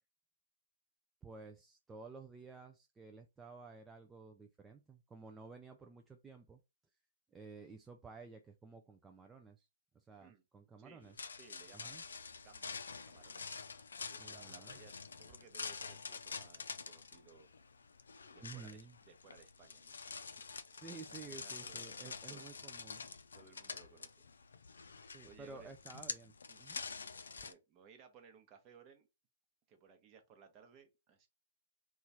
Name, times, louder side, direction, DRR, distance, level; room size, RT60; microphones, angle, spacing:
voice 1, 1.2-6.6 7.3-9.7 9.9-11.2 11.7-12.0 14.2-14.8 18.4-18.9 20.7-23.1 25.0-26.8, right 4 dB, 10° right, 0.3 m, -53 dB
voice 2, 10.8-13.5 14.1-17.5 18.3-20.0 20.4-20.5 21.1-22.5 23.3-24.2 25.2-25.7 26.5-26.6 27.4-29.1 29.7-31.3, right 6 dB, 25° right, 0.8 m, -61 dB
sound 1, 11.0-27.5, left 5 dB, 85° left, 0.4 m, -47 dB
3.0 x 2.4 x 4.1 m
hypercardioid pair, 145°, 0 cm